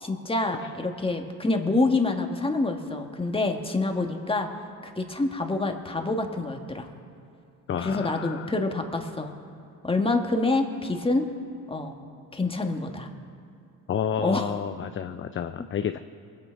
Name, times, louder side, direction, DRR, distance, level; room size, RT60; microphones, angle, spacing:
voice 1, 0.0-4.5 4.8-6.9 7.8-9.3 9.8-11.3 11.7-12.0 12.3-13.1 14.2-14.5, left 2 dB, 15° left, 3 dB, 1.7 m, -27 dB
voice 2, 7.7-8.5 13.9-16.0, left 8 dB, 35° left, 9 dB, 0.5 m, -30 dB
23.0 x 8.8 x 4.7 m, 2.6 s
supercardioid pair, 70°, 37 cm